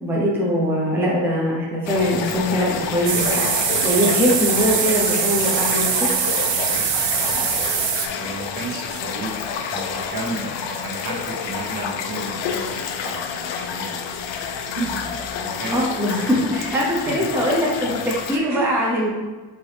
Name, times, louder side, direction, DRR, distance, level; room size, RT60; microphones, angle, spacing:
voice 1, 0.0-6.1 15.7-19.1, equal, 5° right, -5 dB, 0.6 m, -22 dB
sound 1, 1.9-18.4, left 7 dB, 85° left, 0.5 m, -29 dB
sound 2, 3.1-8.1, right 8 dB, 85° right, 0.6 m, -22 dB
voice 2, 6.7-7.1 7.3-7.5 7.8-7.9 8.1-9.3 9.7-14.4 14.7-16.4 18.5-18.8, right 3 dB, 50° right, -2 dB, 1.2 m, -33 dB
4.5 x 3.0 x 3.3 m, 1.3 s
cardioid pair, 115°, 44 cm